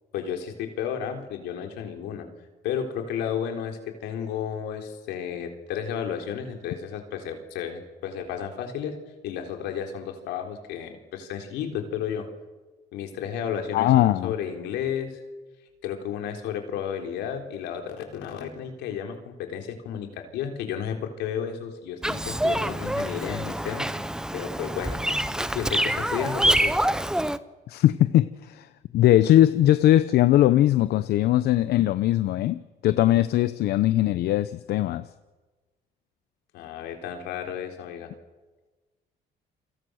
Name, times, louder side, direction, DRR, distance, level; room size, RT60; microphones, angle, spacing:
voice 1, 0.1-2.3 2.6-9.0 9.2-12.3 12.9-15.2 15.8-23.9 24.3-25.3 25.5-26.8 36.5-38.1, left 8 dB, 90° left, 4 dB, 3.9 m, -32 dB
voice 2, 13.7-14.3 27.7-35.1, left 13 dB, 70° left, 14 dB, 0.8 m, -20 dB
Bird vocalization bird call bird song, 22.0-27.4, right 1 dB, 5° right, 0.8 m, -26 dB
29.0 x 24.0 x 6.4 m, 1.3 s
cardioid pair, 110°, 17 cm